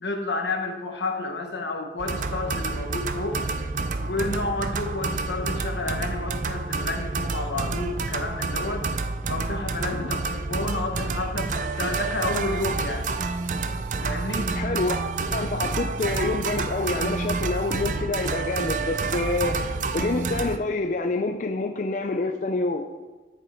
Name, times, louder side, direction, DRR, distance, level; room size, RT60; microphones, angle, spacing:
voice 1, 0.0-3.4 4.0-8.9 9.3-13.1 14.0-14.5, left 2 dB, 80° left, 4 dB, 1.3 m, -30 dB
sound 1, 2.0-20.6, right 3 dB, 45° right, 0.4 m, -29 dB
voice 2, 14.5-15.0 15.3-19.6 19.9-22.9, left 3 dB, 45° left, 5 dB, 0.5 m, -27 dB
10.0 x 6.6 x 4.4 m, 1.3 s
head